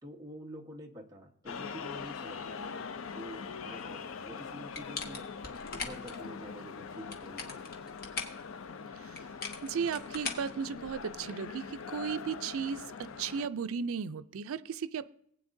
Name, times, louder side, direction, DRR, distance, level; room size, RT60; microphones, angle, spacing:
voice 1, 0.0-5.2 5.7-7.7, equal, 15° right, 0 dB, 1.2 m, -48 dB
sound 1, 1.5-13.5, left 5 dB, 80° left, 0.5 m, -43 dB
sound 2, 4.7-6.2 6.9-8.4 9.2-11.2, left 4 dB, 45° left, 1.3 m, -40 dB
voice 2, 9.6-15.1, right 6 dB, 85° right, 14 dB, 0.4 m, -35 dB
19.0 x 8.7 x 2.6 m, 0.67 s
head